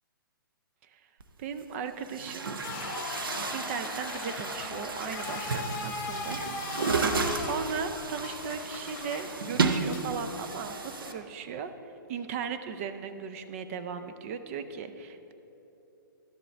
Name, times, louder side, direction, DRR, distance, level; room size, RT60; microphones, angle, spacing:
Chatter / Gurgling / Tap, 1.2-1.3 2.0-11.1, right 4 dB, 80° right, 0.7 m, -33 dB
voice 1, 1.4-2.5 3.5-6.4 6.8-11.7 12.1-15.3, right 6 dB, 40° right, 9 dB, 0.5 m, -37 dB
sound 1, 2.6-11.2, left 4 dB, 40° left, 1.2 m, -39 dB
11.5 x 7.6 x 3.4 m, 3.0 s
hypercardioid pair, 135°, 11 cm